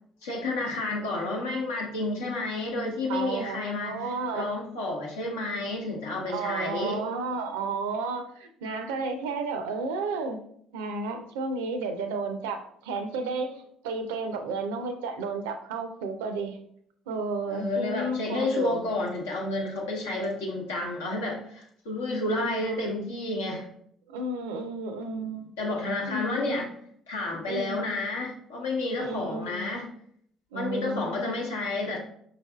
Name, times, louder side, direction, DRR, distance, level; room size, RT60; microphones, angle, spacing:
voice 1, 0.2-7.0 17.5-23.7 25.6-26.7 27.1-29.9 30.5-32.0, left 2 dB, 80° left, -1 dB, 0.9 m, -30 dB
voice 2, 3.1-4.5 6.3-10.4 10.7-16.6 17.1-18.8 22.4-22.8 24.1-25.5 26.1-26.6 27.5-27.8 29.0-29.7 30.5-31.4, right 3 dB, 75° right, 7 dB, 0.4 m, -32 dB
5.1 x 3.3 x 2.3 m, 0.66 s
hypercardioid pair, 50°, 0 cm